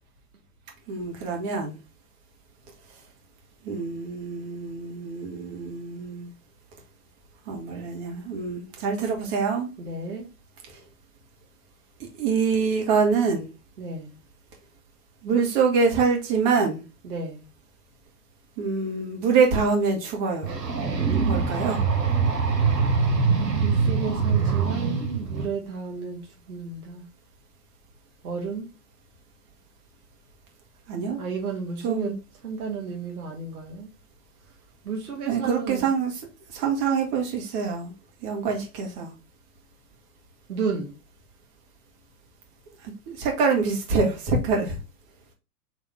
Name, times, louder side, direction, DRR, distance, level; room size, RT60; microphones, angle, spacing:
voice 1, 0.9-1.8 3.6-6.3 7.5-9.7 12.2-13.5 15.2-16.8 18.6-20.5 21.3-21.8 30.9-31.2 31.8-32.1 35.2-36.2 36.5-37.9 38.2-39.1 43.1-44.8, right 5 dB, 35° right, 1.5 m, -25 dB
voice 2, 9.8-10.3 13.8-14.1 17.0-17.4 21.1-21.5 23.6-26.2 26.5-27.0 28.2-28.7 31.2-32.1 32.4-33.9 34.8-35.9 40.5-40.9, right 5 dB, 70° right, 1.5 m, -32 dB
sound 1, 20.4-25.5, right 5 dB, 85° right, 1.2 m, -23 dB
4.2 x 3.0 x 3.2 m
figure-of-eight pair, 105°, 47 cm